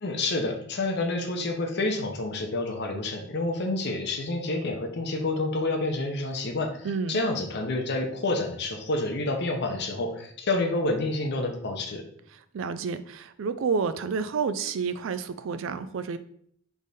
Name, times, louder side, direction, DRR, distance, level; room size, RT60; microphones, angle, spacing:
voice 1, 0.0-12.0, left 2 dB, 55° left, 4 dB, 0.7 m, -28 dB
voice 2, 6.8-7.2 12.3-16.2, right 5 dB, 65° right, 12 dB, 0.4 m, -30 dB
3.5 x 3.4 x 4.0 m, 0.65 s
head